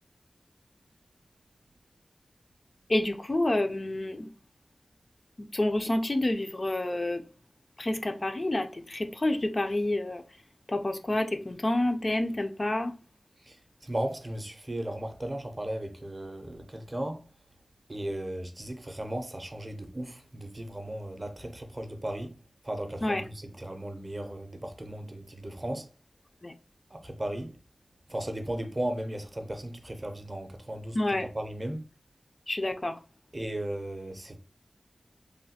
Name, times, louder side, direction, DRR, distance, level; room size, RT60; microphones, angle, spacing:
voice 1, 2.9-4.3 5.4-7.2 7.8-10.2 10.7-12.9 23.0-23.2 26.4-26.5 30.9-31.3 32.5-33.0, left 1 dB, 40° left, 0.3 m, -28 dB
voice 2, 13.8-17.2 17.9-22.3 22.6-25.9 26.9-27.5 28.1-31.8 33.3-34.4, right 1 dB, 30° right, 0.5 m, -36 dB
3.2 x 2.2 x 2.7 m
wide cardioid pair, 70°, 0 cm